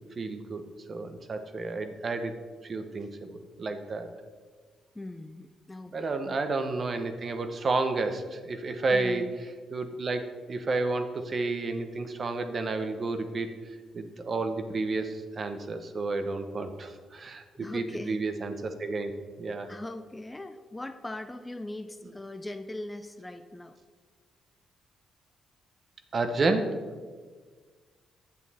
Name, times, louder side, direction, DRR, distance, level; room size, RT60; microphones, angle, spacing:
voice 1, 0.2-0.6 0.9-2.3 2.6-3.3 3.6-4.1 5.9-9.3 9.7-10.2 10.5-13.5 13.9-19.1 19.4-19.7 26.1-26.7, right 3 dB, 40° right, 8 dB, 0.9 m, -31 dB
voice 2, 4.9-6.4 8.9-9.3 17.6-18.2 19.7-23.8, left 2 dB, 15° left, 9 dB, 0.4 m, -40 dB
8.3 x 7.0 x 4.2 m, 1.5 s
cardioid pair, 90°, 0 cm